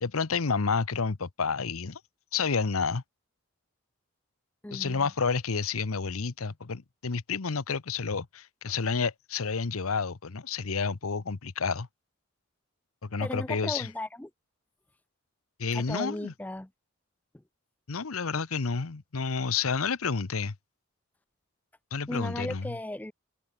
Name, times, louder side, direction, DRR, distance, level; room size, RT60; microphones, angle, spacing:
voice 1, 0.0-2.0 2.3-3.0 4.7-11.9 13.0-13.9 15.6-16.3 17.9-20.5 21.9-22.8, left 5 dB, 90° left, 0.9 m, -30 dB
voice 2, 4.6-5.1 13.2-14.3 15.7-16.7 22.1-23.1, left 1 dB, 5° left, 0.4 m, -36 dB
open air
head